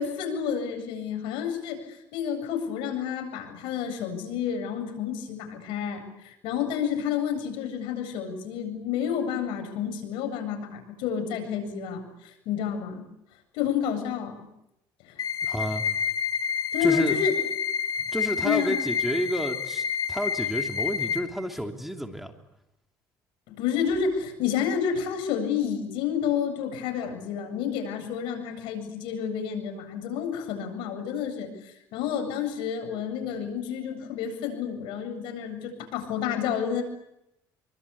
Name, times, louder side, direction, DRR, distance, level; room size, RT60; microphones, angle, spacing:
voice 1, 0.0-13.1 13.5-14.5 15.0-15.2 16.7-17.3 18.4-18.7 23.5-36.8, left 8 dB, 80° left, 6 dB, 7.9 m, -30 dB
sound 1, 15.2-21.2, left 7 dB, 50° left, 2.9 m, -29 dB
voice 2, 15.4-15.8 16.8-17.2 18.1-22.3, equal, ahead, 3 dB, 3.0 m, -30 dB
27.5 x 24.5 x 8.6 m, 0.84 s
cardioid pair, 105°, 8 cm